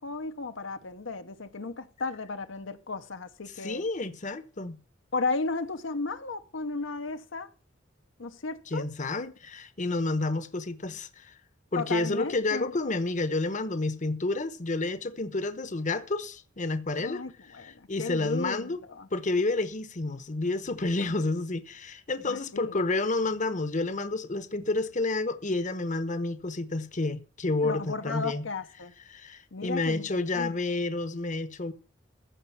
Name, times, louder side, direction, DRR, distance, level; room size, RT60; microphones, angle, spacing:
voice 1, 0.0-3.8 5.1-7.5 8.2-8.8 11.7-12.7 17.0-19.1 21.0-21.2 22.3-22.8 27.6-28.9 29.5-30.6, left 3 dB, 75° left, 0.9 m, -34 dB
voice 2, 3.6-4.8 8.7-11.3 11.7-17.2 17.6-18.8 19.1-28.4 29.1-31.7, left 2 dB, 40° left, 1.0 m, -30 dB
15.0 x 5.2 x 8.7 m
head